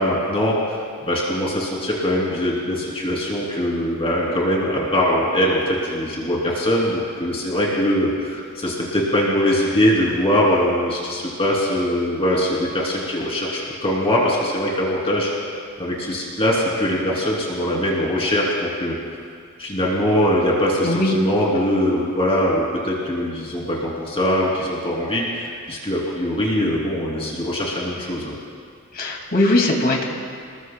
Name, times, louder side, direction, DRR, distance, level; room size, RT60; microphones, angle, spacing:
voice 1, 0.0-15.3 15.8-18.9 19.6-28.4, equal, 25° left, -4 dB, 2.8 m, -22 dB
voice 2, 28.9-30.0, left 1 dB, 45° left, 1 dB, 2.2 m, -19 dB
29.0 x 20.5 x 2.2 m, 2.2 s
head